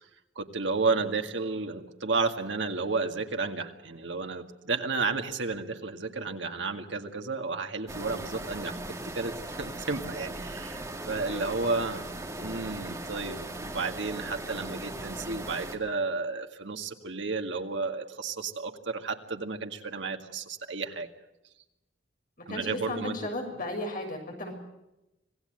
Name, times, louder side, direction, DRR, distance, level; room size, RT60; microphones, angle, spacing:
voice 1, 0.4-8.8 9.0-12.0 12.4-21.1 22.5-23.2, right 4 dB, 75° right, 5 dB, 2.1 m, -32 dB
sound 1, 7.9-15.8, right 1 dB, 15° right, 2.2 m, -38 dB
voice 2, 22.4-24.5, left 1 dB, 45° left, 2 dB, 6.8 m, -35 dB
26.0 x 18.0 x 8.0 m, 0.93 s
head